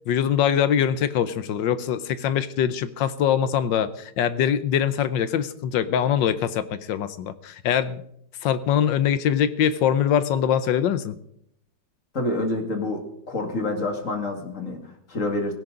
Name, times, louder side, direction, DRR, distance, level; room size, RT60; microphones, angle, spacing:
voice 1, 0.1-8.0 8.4-11.1, left 9 dB, 85° left, 14 dB, 1.5 m, -23 dB
voice 2, 12.1-15.5, left 2 dB, 45° left, 3 dB, 2.4 m, -28 dB
17.0 x 16.5 x 3.8 m, 0.72 s
omnidirectional pair, 1.9 m